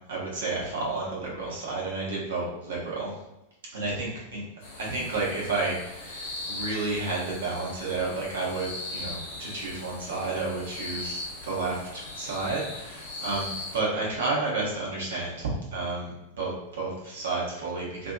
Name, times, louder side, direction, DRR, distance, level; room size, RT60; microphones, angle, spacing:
voice 1, 0.1-3.2 3.7-4.4 4.8-18.1, right 3 dB, 60° right, -4 dB, 0.9 m, -31 dB
sound 1, 4.6-13.8, left 2 dB, 50° left, 0.9 m, -39 dB
2.6 x 2.5 x 2.4 m, 0.94 s
figure-of-eight pair, 90°, 0 cm